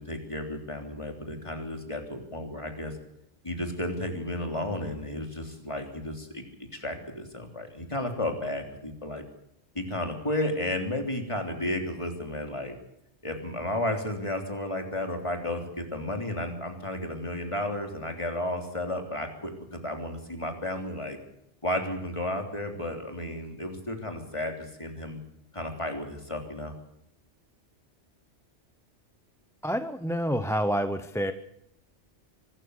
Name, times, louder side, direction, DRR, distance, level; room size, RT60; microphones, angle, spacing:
voice 1, 0.0-2.9 3.4-9.2 9.8-12.8 13.2-21.2 21.6-25.2 25.5-26.7, left 1 dB, 25° left, 4 dB, 3.5 m, -33 dB
voice 2, 29.6-31.3, equal, 5° left, 9 dB, 0.8 m, -28 dB
24.5 x 13.5 x 8.3 m, 0.80 s
omnidirectional pair, 1.2 m